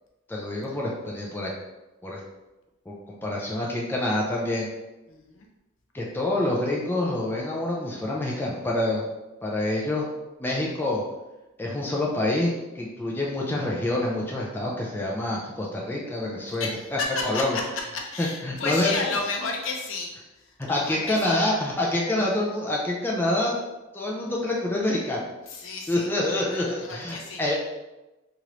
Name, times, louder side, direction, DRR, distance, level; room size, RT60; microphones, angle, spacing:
voice 1, 0.3-1.5 2.0-2.2 2.9-4.7 5.9-9.0 9.4-10.1 10.4-11.0 11.6-17.6 18.2-18.9 20.6-23.6 23.9-25.2 25.9-27.6, left 1 dB, 10° left, -3 dB, 0.4 m, -27 dB
voice 2, 5.1-5.5 16.5-20.1 20.4-21.4 25.5-26.1 26.5-27.6, left 3 dB, 75° left, 0 dB, 0.6 m, -32 dB
3.0 x 2.5 x 3.0 m, 1.0 s
head